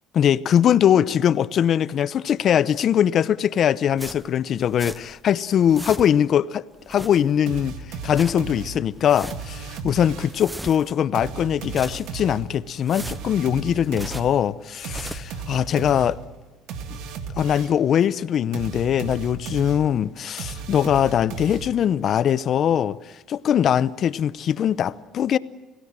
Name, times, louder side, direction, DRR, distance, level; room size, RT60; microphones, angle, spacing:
voice 1, 0.1-7.7 8.0-16.2 17.4-23.0 23.3-25.4, left 9 dB, 55° left, 0.8 m, -21 dB
sound 1, 4.0-5.3 5.5-6.4 6.7-7.6 7.9-8.5 8.9-9.6 10.0-11.1 11.5-12.3 12.7-14.4 14.8-15.4, right 1 dB, 10° right, 0.7 m, -39 dB
sound 2, 7.5-10.5 11.1-17.9 18.5-22.0, right 5 dB, 75° right, 2.0 m, -35 dB
27.5 x 17.0 x 7.5 m
supercardioid pair, 95°, 0 cm